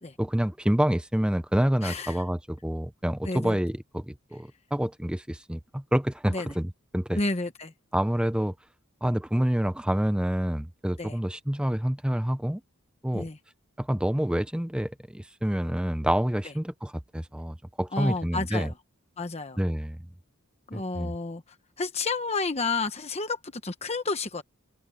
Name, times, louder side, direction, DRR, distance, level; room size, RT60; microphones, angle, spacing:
voice 1, 0.2-7.2 7.9-8.5 9.0-12.6 13.0-13.3 13.8-18.7 19.6-20.0 20.7-21.1, equal, 5° right, 0.5 m, -27 dB
voice 2, 1.8-2.2 3.2-3.6 6.3-6.5 7.1-7.7 11.0-11.2 13.1-13.4 17.9-18.7 19.2-19.6 20.7-21.4 21.8-24.4, left 3 dB, 30° left, 1.1 m, -31 dB
head